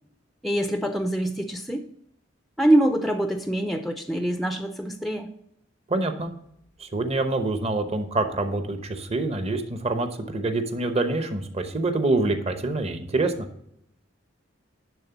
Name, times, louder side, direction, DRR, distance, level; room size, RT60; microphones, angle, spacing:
voice 1, 0.4-1.9 2.6-5.3, right 1 dB, ahead, 6 dB, 0.4 m, -24 dB
voice 2, 5.9-6.3 6.8-13.5, right 2 dB, 35° right, 7 dB, 0.8 m, -26 dB
10.5 x 3.6 x 5.8 m, 0.73 s
head